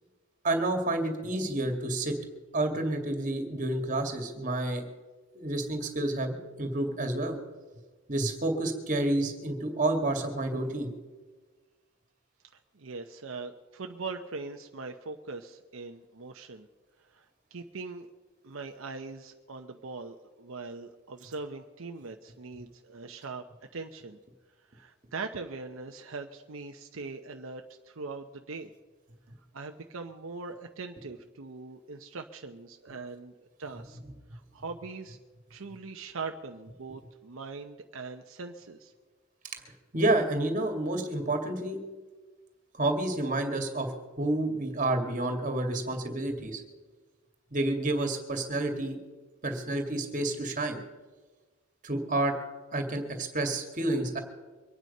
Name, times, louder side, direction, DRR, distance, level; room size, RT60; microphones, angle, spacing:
voice 1, 0.4-2.2 2.5-4.8 5.4-7.4 8.1-10.9 39.9-41.8 42.8-46.6 47.5-49.0 49.4-50.8 51.8-52.4 52.7-54.2, right 2 dB, 40° right, 5 dB, 2.2 m, -29 dB
voice 2, 12.7-16.7 17.1-18.1 18.4-23.4 23.7-24.2 24.7-28.7 29.5-33.3 33.6-34.0 34.3-35.2 35.5-38.9, right 4 dB, 75° right, 5 dB, 0.8 m, -41 dB
24.0 x 9.3 x 5.5 m, 1.3 s
head